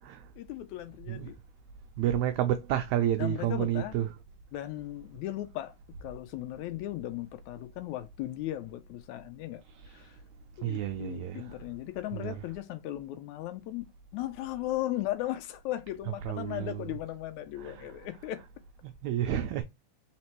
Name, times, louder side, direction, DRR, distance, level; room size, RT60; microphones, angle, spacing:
voice 1, 0.4-1.3 3.2-4.0 4.5-5.7 6.0-9.6 9.9-10.2 10.6-13.9 14.1-18.4, left 14 dB, 80° left, 1.7 m, -37 dB
voice 2, 2.0-4.1 9.8-10.1 10.6-11.6 12.1-12.3 16.2-16.9 17.6-17.8 19.0-19.6, right 11 dB, 90° right, 1.6 m, -30 dB
4.4 x 4.1 x 2.9 m
omnidirectional pair, 3.7 m